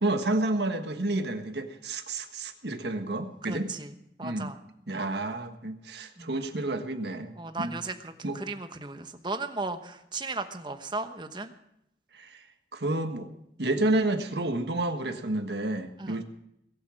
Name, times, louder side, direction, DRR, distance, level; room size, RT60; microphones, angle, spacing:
voice 1, 0.0-3.7 4.2-4.5 4.9-7.8 8.2-8.4 12.1-12.4 12.7-13.3 13.6-16.2, right 2 dB, 70° right, 7 dB, 1.5 m, -30 dB
voice 2, 3.4-3.9 4.2-4.6 6.2-6.3 7.4-11.5 16.0-16.2, right 3 dB, 25° right, 8 dB, 1.0 m, -36 dB
22.0 x 8.7 x 6.4 m, 0.78 s
head